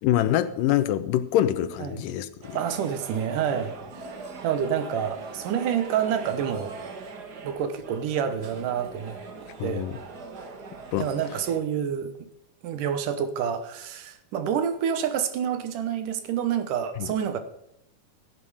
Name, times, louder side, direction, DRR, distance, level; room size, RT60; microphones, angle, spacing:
voice 1, 0.0-2.6 9.6-10.0 10.9-11.1 17.0-17.1, left 12 dB, 90° left, 13 dB, 2.5 m, -25 dB
sound 1, 2.4-11.6, right 4 dB, 60° right, 1.0 m, -41 dB
voice 2, 2.5-4.1 4.4-6.8 7.4-9.2 9.6-9.9 11.0-12.2 12.6-17.4, right 8 dB, 80° right, 10 dB, 2.7 m, -28 dB
16.5 x 9.0 x 5.0 m, 0.79 s
omnidirectional pair, 3.8 m